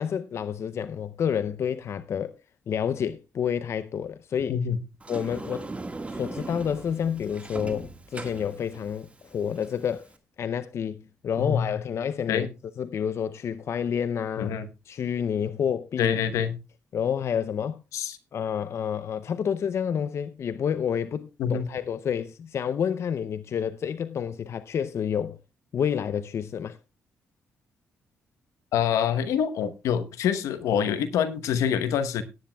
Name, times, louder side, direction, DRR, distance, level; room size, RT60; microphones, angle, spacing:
voice 1, 0.0-2.3 2.7-4.6 5.1-5.7 6.1-10.1 10.4-12.5 12.8-14.5 14.9-16.2 16.9-17.8 18.3-25.4 25.7-26.8, left 8 dB, 60° left, 0.6 m, -29 dB
Sliding door, 5.0-10.2, right 2 dB, 25° right, 1.6 m, -39 dB
voice 2, 14.4-14.7 16.0-16.6 17.9-18.2 21.4-21.7 28.7-32.2, left 8 dB, 85° left, 1.0 m, -26 dB
17.5 x 10.0 x 2.3 m
cardioid pair, 70°, 5 cm